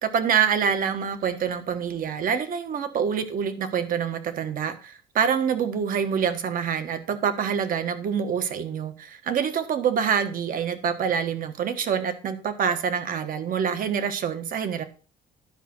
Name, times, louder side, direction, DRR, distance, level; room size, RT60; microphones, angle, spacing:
voice 1, 0.0-14.8, right 7 dB, 55° right, 1.4 m, -26 dB
11.5 x 5.2 x 6.1 m
cardioid pair, 110°, 17 cm